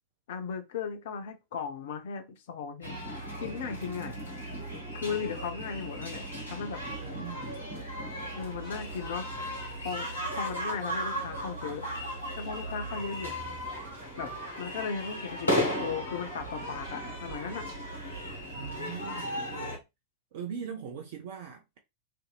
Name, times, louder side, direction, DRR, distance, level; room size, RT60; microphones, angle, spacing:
voice 1, 0.3-3.0 3.4-4.2 4.9-6.9 8.3-9.4 9.8-11.9 12.4-13.3 14.2-14.3 14.6-17.7, left 6 dB, 55° left, 0.5 m, -36 dB
sound 1, 2.8-19.8, equal, 80° left, 0.9 m, -36 dB
sound 2, 5.7-18.8, right 6 dB, 35° right, 1.1 m, -51 dB
voice 2, 7.0-7.6 18.5-19.8 20.3-21.8, right 7 dB, 50° right, 0.5 m, -41 dB
2.7 x 2.6 x 2.2 m
figure-of-eight pair, 90°, 0 cm